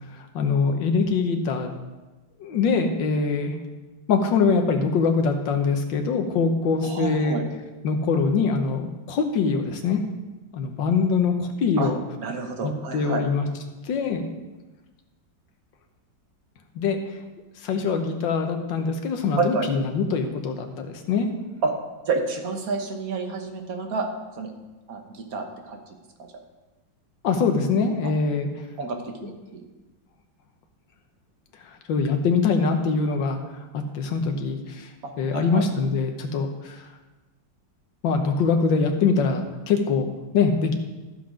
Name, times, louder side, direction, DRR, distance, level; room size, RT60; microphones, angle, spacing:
voice 1, 0.1-1.7 2.4-3.6 4.1-7.4 7.8-10.0 10.5-12.0 12.6-13.5 13.8-14.2 16.8-17.0 17.6-21.3 27.2-28.5 31.9-33.4 33.7-34.9 35.2-36.8 38.0-40.1 40.3-40.7, left 5 dB, 75° left, 5 dB, 1.7 m, -23 dB
voice 2, 6.8-7.4 11.8-11.9 12.2-13.2 19.4-19.7 21.6-21.7 22.0-24.1 24.4-24.5 24.9-25.8 28.8-29.6 35.0-35.6, right 4 dB, 55° right, 4 dB, 1.5 m, -29 dB
14.0 x 5.9 x 5.0 m, 1.2 s
omnidirectional pair, 2.1 m